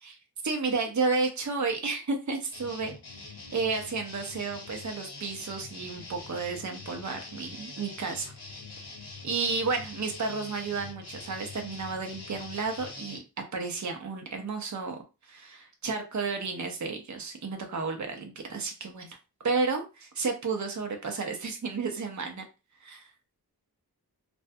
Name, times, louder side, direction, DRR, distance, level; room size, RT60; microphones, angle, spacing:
voice 1, 0.4-2.9 3.5-8.3 9.2-13.2 13.5-15.0 15.3-19.2 19.4-22.4 22.8-23.1, right 4 dB, 45° right, 4 dB, 0.6 m, -32 dB
sound 1, 2.5-13.2, left 3 dB, 75° left, 0.8 m, -44 dB
2.5 x 2.2 x 2.5 m, 0.29 s
wide cardioid pair, 45°, 39 cm